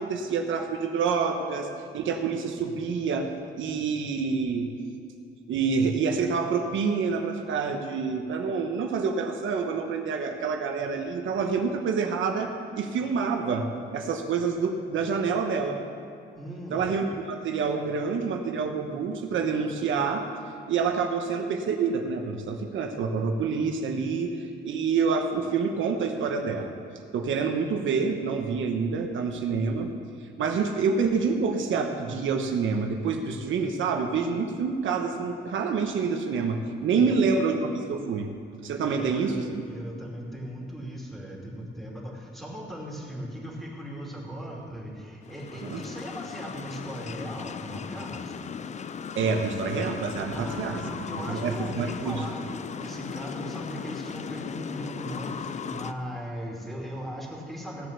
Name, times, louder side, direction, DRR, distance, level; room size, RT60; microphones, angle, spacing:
voice 1, 0.0-1.7 1.9-3.3 3.6-4.7 5.5-15.8 16.7-20.2 20.7-26.7 27.1-29.9 30.4-38.3 38.6-39.7 45.6-45.8 49.1-50.9 51.2-52.2, right 5 dB, 80° right, 4 dB, 1.2 m, -27 dB
voice 2, 16.3-16.9 36.9-37.2 38.8-48.5 50.3-52.4 52.8-57.9, equal, ahead, -3 dB, 3.0 m, -38 dB
sound 1, 45.2-55.9, left 6 dB, 35° left, 0.5 m, -37 dB
16.5 x 7.8 x 6.8 m, 2.5 s
cardioid pair, 120°, 20 cm